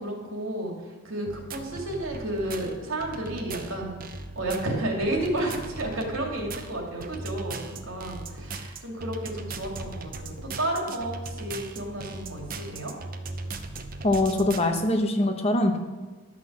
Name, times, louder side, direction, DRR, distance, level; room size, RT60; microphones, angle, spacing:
voice 1, 0.0-12.9, right 1 dB, 70° right, 0 dB, 2.6 m, -32 dB
sound 1, 1.3-14.8, right 3 dB, 40° right, 0.8 m, -38 dB
voice 2, 14.0-15.8, left 1 dB, 30° left, 5 dB, 0.9 m, -23 dB
11.0 x 6.1 x 7.4 m, 1.3 s
head